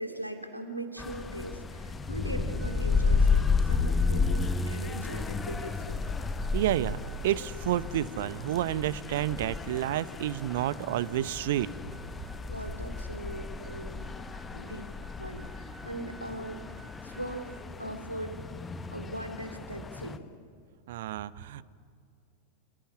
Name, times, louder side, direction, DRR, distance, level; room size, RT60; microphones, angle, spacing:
voice 1, 0.0-6.0 12.5-14.0 14.5-14.9 15.2-18.4 18.9-20.2, right 1 dB, 90° right, 5 dB, 3.0 m, -40 dB
sound 1, 1.0-20.2, left 4 dB, 15° left, 1.1 m, -32 dB
sound 2, 2.5-19.1, right 2 dB, 35° right, 6.1 m, -53 dB
voice 2, 6.5-7.0 7.2-11.7 20.9-21.6, right 13 dB, 55° right, 18 dB, 0.9 m, -30 dB
27.5 x 17.5 x 10.0 m, 2.4 s
figure-of-eight pair, 90°, 0 cm